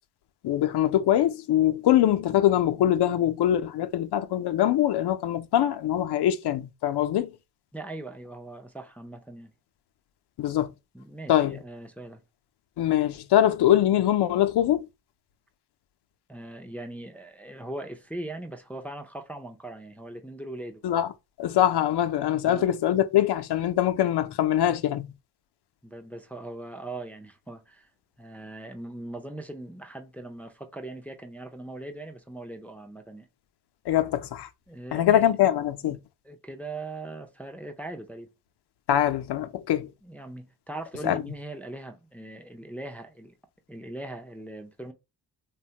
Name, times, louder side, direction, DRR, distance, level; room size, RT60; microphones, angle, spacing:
voice 1, 0.4-7.3 10.4-10.7 11.3-11.6 12.8-14.9 20.8-21.1 21.4-25.1 33.9-34.5 34.9-36.0 38.9-39.9 41.0-41.2, left 11 dB, 65° left, 0.5 m, -23 dB
voice 2, 7.7-9.5 10.9-12.2 16.3-20.8 22.4-22.7 25.8-27.9 28.2-33.3 34.7-35.3 35.8-35.9 36.2-38.3 40.0-43.4 43.7-44.9, right 2 dB, 5° left, 0.4 m, -40 dB
2.9 x 2.2 x 2.8 m
cardioid pair, 55°, 43 cm